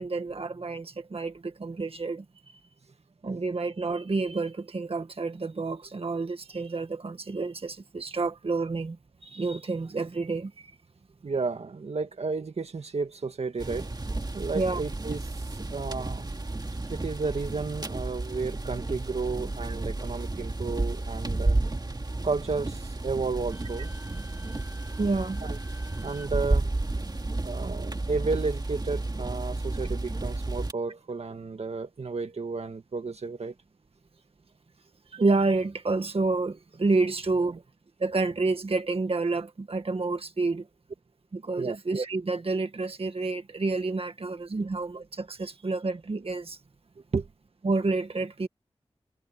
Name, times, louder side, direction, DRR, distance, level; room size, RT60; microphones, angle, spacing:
voice 1, 0.0-2.6 3.2-10.7 14.5-14.8 25.0-25.4 35.1-37.6 38.0-40.7 41.3-46.6 47.6-48.5, right 3 dB, 60° right, 1.7 m, -29 dB
voice 2, 11.2-13.9 14.3-15.3 15.7-16.3 16.9-21.6 22.2-23.9 25.4-25.6 26.0-26.7 27.4-33.5 37.4-37.6 41.6-41.8 44.6-44.7 47.1-47.3, right 4 dB, 80° right, 1.9 m, -32 dB
sound 1, 13.6-30.7, right 2 dB, 40° right, 2.4 m, -32 dB
Wind instrument woodwind instrument, 23.5-26.3, left 1 dB, 15° right, 6.5 m, -51 dB
cardioid pair, 45°, 11 cm